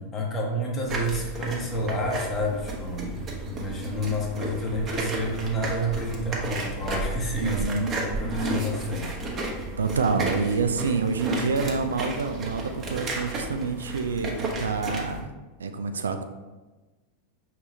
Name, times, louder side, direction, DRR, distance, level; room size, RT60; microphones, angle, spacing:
voice 1, 0.0-9.2, equal, 25° left, 0 dB, 1.0 m, -30 dB
sound 1, 0.9-15.2, right 2 dB, 30° right, 0.9 m, -33 dB
voice 2, 7.4-8.0 9.8-15.3 15.6-16.2, right 4 dB, 80° right, 7 dB, 0.3 m, -27 dB
4.7 x 3.2 x 2.8 m, 1.2 s
hypercardioid pair, 90°, 0 cm